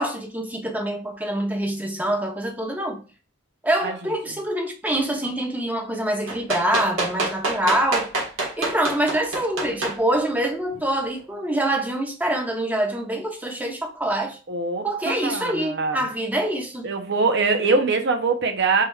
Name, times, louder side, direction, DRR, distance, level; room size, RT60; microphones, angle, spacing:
voice 1, 0.0-3.0 3.6-8.1 8.6-14.4 14.8-16.8 17.6-17.7, right 1 dB, 10° right, 0.8 m, -25 dB
sound 1, 6.3-10.0 10.9-11.0, right 2 dB, 80° right, 1.5 m, -26 dB
voice 2, 14.5-16.0 16.8-18.8, right 4 dB, 60° right, 0.8 m, -23 dB
4.6 x 3.3 x 2.3 m
head